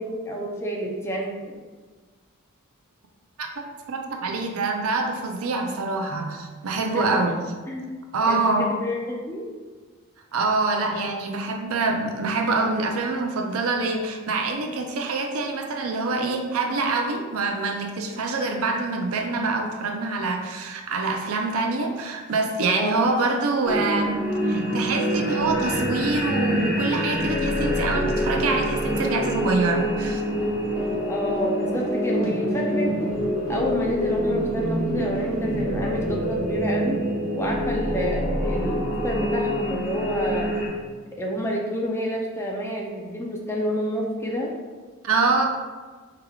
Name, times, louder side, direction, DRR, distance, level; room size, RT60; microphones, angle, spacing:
voice 1, 0.0-1.5 6.9-7.1 7.7-7.9 8.3-9.5 22.7-23.1 31.1-33.0 33.5-37.0 37.4-40.5 41.2-44.5, equal, 10° left, -2 dB, 0.4 m, -28 dB
voice 2, 3.4-7.4 8.1-8.8 10.3-24.2 24.4-30.2 45.0-45.5, right 3 dB, 70° right, 3 dB, 0.5 m, -25 dB
sound 1, 23.6-40.7, equal, 60° left, 1.2 m, -26 dB
4.7 x 3.3 x 2.3 m, 1.4 s
head